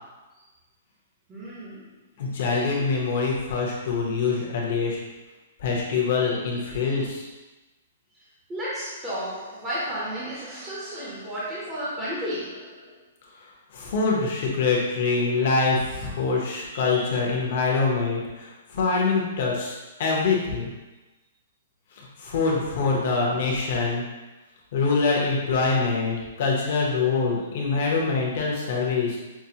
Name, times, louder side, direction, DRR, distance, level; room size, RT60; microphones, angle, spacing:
voice 1, 1.3-2.0 2.3-2.6 6.7-7.1 8.5-12.9 16.7-17.2, equal, 10° right, -9 dB, 0.7 m, -34 dB
voice 2, 2.2-5.0 5.6-7.3 13.7-18.5 18.7-20.7 22.2-24.0 24.7-29.2, left 4 dB, 45° left, -3 dB, 0.9 m, -24 dB
5.8 x 2.1 x 2.8 m, 1.1 s
hypercardioid pair, 175°, 0 cm